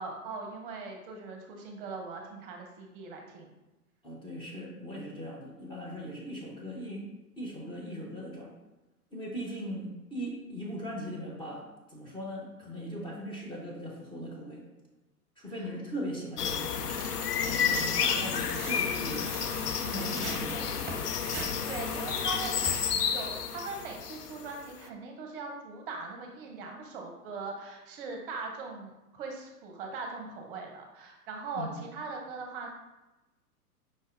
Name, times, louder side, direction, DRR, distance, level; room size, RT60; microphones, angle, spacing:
voice 1, 0.0-3.5 15.6-15.7 21.7-22.7 23.1-32.7, right 4 dB, 35° right, 2 dB, 0.7 m, -40 dB
voice 2, 4.0-7.1 7.4-8.5 9.1-14.6 15.4-16.9 17.4-19.3 19.8-20.9 31.5-31.8, equal, 10° left, -3 dB, 0.7 m, -39 dB
sound 1, 16.4-24.6, left 7 dB, 85° left, 0.6 m, -31 dB
Tearing, 16.9-23.0, right 2 dB, 15° right, 1.1 m, -42 dB
5.2 x 3.9 x 2.5 m, 1.0 s
figure-of-eight pair, 110°, 46 cm